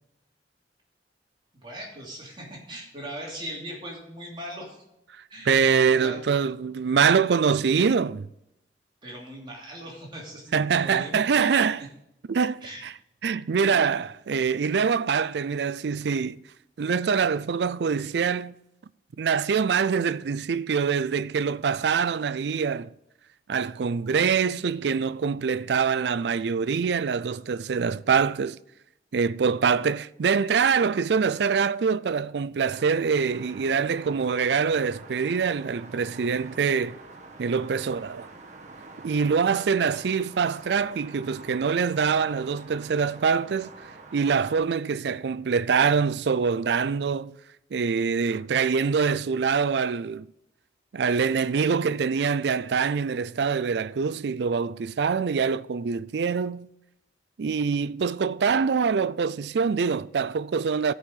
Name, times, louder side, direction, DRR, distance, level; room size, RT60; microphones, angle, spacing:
voice 1, 1.6-4.8 5.3-6.2 9.0-11.2 11.5-11.9 12.6-12.8, equal, 25° right, 3.0 m, -40 dB
voice 2, 5.5-8.3 10.5-11.8 12.3-12.9 13.2-16.4 16.8-18.6 19.2-22.9 23.5-28.6 29.1-37.0 37.4-38.3 39.0-43.7 44.1-47.4 47.7-50.3 50.9-56.7 57.4-60.9, right 6 dB, 70° right, 0.4 m, -24 dB
sound 1, 32.7-44.5, right 3 dB, 45° right, 1.3 m, -46 dB
13.5 x 5.5 x 6.5 m
head